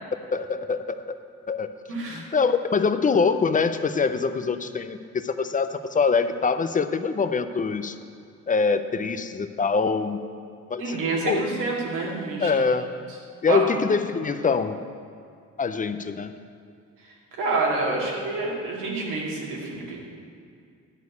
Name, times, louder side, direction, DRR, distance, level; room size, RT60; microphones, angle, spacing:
voice 1, 0.3-1.2 1.5-1.7 2.1-8.0 8.5-10.2 10.7-11.0 11.2-11.5 12.4-12.9 13.4-14.8 15.6-16.3, left 5 dB, 25° left, 10 dB, 0.5 m, -24 dB
voice 2, 1.9-2.2 10.8-12.5 13.5-13.6 17.4-20.0, right 3 dB, 90° right, -4 dB, 2.3 m, -27 dB
10.5 x 4.7 x 8.1 m, 2.3 s
cardioid pair, 90°, 30 cm